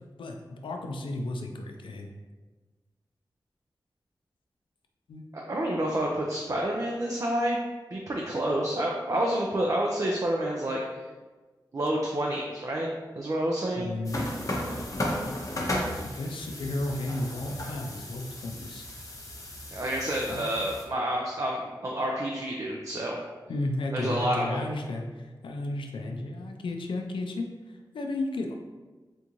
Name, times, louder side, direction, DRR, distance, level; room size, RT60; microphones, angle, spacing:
voice 1, 0.2-2.1 5.1-5.3 13.7-14.8 16.0-18.8 20.3-20.5 23.5-28.5, left 2 dB, 90° left, 3 dB, 0.4 m, -33 dB
voice 2, 5.3-7.6 7.9-10.8 11.7-12.9 13.1-14.0 19.7-23.2 23.9-24.6, right 1 dB, 40° right, -2 dB, 0.4 m, -29 dB
sound 1, 14.0-20.8, left 1 dB, 40° left, 0.7 m, -35 dB
3.5 x 2.5 x 2.9 m, 1.3 s
cardioid pair, 55°, 8 cm